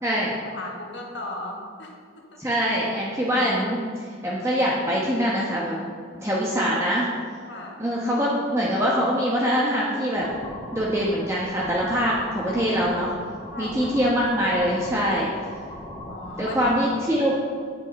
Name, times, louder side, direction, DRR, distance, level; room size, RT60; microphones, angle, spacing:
voice 1, 0.4-2.4 7.5-7.9 13.5-14.1 16.1-16.7, left 2 dB, 65° left, 0 dB, 1.8 m, -37 dB
voice 2, 2.4-5.8 6.2-7.1 7.8-10.3 10.7-13.1 13.6-15.3 16.4-17.3, equal, 15° right, -5 dB, 1.1 m, -23 dB
sound 1, 10.1-16.8, left 1 dB, 20° left, 1.9 m, -39 dB
9.4 x 8.5 x 5.3 m, 2.1 s
head